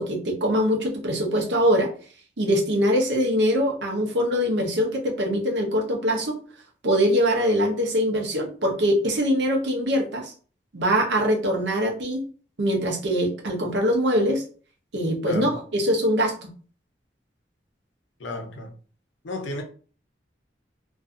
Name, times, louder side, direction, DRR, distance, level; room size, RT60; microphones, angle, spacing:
voice 1, 0.0-1.9 2.4-6.4 6.8-10.3 10.7-12.2 12.6-14.4 14.9-16.5, equal, 75° right, 0.7 m, -23 dB
voice 2, 18.2-18.7 19.2-19.6, left 2 dB, 85° left, 0.6 m, -33 dB
2.5 x 2.3 x 2.5 m
head